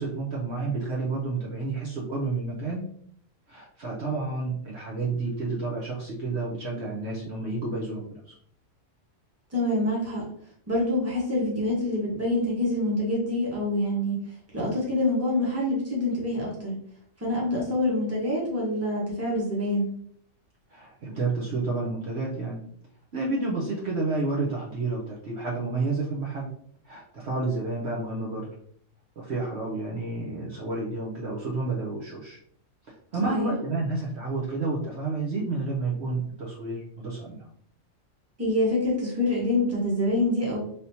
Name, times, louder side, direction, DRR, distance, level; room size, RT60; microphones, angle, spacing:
voice 1, 0.0-2.9 3.5-8.3 20.7-22.6 23.1-26.5 26.8-28.5 29.2-32.4 33.1-37.5, right 3 dB, 60° right, -4 dB, 1.0 m, -30 dB
voice 2, 9.5-10.2 10.7-14.2 14.5-16.8 17.2-19.9 33.2-33.5 38.4-40.6, left 1 dB, 10° right, -5 dB, 1.1 m, -26 dB
3.5 x 2.8 x 2.7 m, 0.64 s
omnidirectional pair, 1.3 m